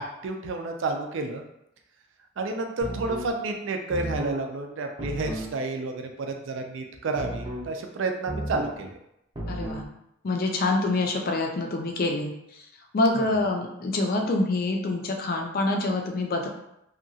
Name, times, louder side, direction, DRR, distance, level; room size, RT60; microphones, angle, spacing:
voice 1, 0.0-1.4 2.4-8.9 13.2-13.3, right 3 dB, 65° right, 4 dB, 0.4 m, -30 dB
sound 1, 2.8-3.3 3.9-4.4 5.0-5.5 7.2-7.7 8.3-8.8 9.4-9.9, right 1 dB, 25° right, 0.6 m, -33 dB
voice 2, 9.5-9.8 10.2-12.3 12.9-16.5, left 2 dB, 45° left, 2 dB, 0.4 m, -26 dB
2.8 x 2.3 x 2.7 m, 0.81 s
head